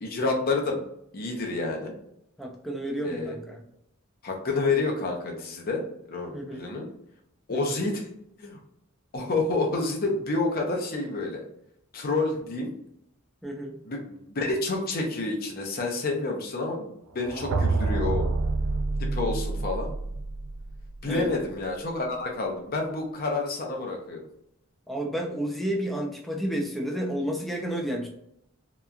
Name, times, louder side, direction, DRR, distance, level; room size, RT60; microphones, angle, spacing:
voice 1, 0.0-0.8 1.1-1.9 3.0-3.3 4.2-6.9 7.5-8.1 8.4-8.6 9.1-11.4 11.9-12.7 13.8-18.3 19.0-19.9 21.0-24.2, left 3 dB, 45° left, 1 dB, 0.6 m, -29 dB
voice 2, 2.4-3.6 6.3-6.6 7.5-7.7 13.4-13.8 21.0-21.3 24.9-28.1, equal, ahead, 0 dB, 0.4 m, -31 dB
sound 1, 17.2-21.1, right 3 dB, 80° right, 0.3 m, -28 dB
2.9 x 2.2 x 2.4 m, 0.75 s
head